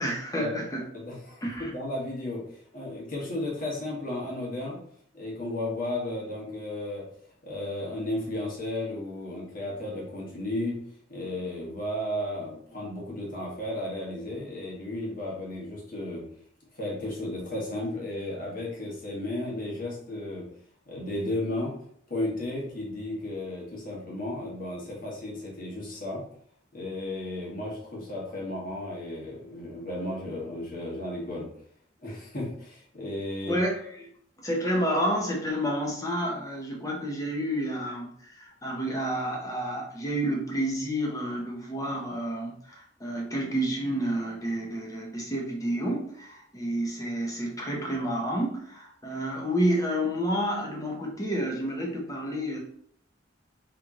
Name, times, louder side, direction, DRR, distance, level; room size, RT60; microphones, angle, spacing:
voice 1, 0.0-0.8 1.4-1.7 33.5-34.1 34.4-52.6, equal, 20° left, -1 dB, 0.9 m, -30 dB
voice 2, 0.9-4.8 5.1-7.0 7.4-10.8 11.1-16.2 16.7-20.4 20.9-21.7 22.1-26.2 26.7-31.5 32.0-33.6, left 1 dB, 50° left, -4 dB, 1.5 m, -34 dB
3.4 x 3.0 x 3.7 m, 0.65 s
head